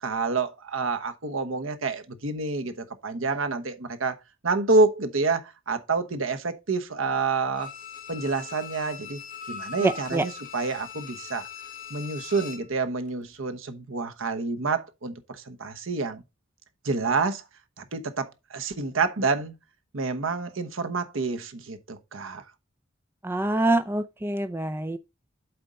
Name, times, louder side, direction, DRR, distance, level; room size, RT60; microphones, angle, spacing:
voice 1, 0.0-4.2 4.4-7.7 8.1-9.2 9.5-11.5 11.9-16.2 16.8-17.4 17.8-19.5 19.9-22.4, right 3 dB, 80° right, 1.0 m, -28 dB
Bowed string instrument, 7.5-12.7 13.1-13.2, left 6 dB, 40° left, 1.3 m, -41 dB
voice 2, 9.8-10.2 23.2-25.0, right 2 dB, 10° right, 0.4 m, -25 dB
7.8 x 4.4 x 5.2 m
head